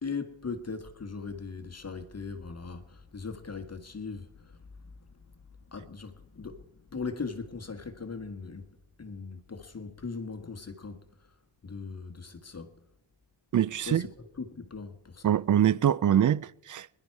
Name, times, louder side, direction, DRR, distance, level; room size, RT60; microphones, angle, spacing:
voice 1, 0.0-5.3 5.7-8.7 9.0-12.8 13.8-15.3, left 4 dB, 30° left, 1.6 m, -40 dB
voice 2, 13.5-14.0 15.2-17.0, right 10 dB, 40° right, 0.5 m, -24 dB
21.0 x 11.0 x 4.7 m
cardioid pair, 95°, 48 cm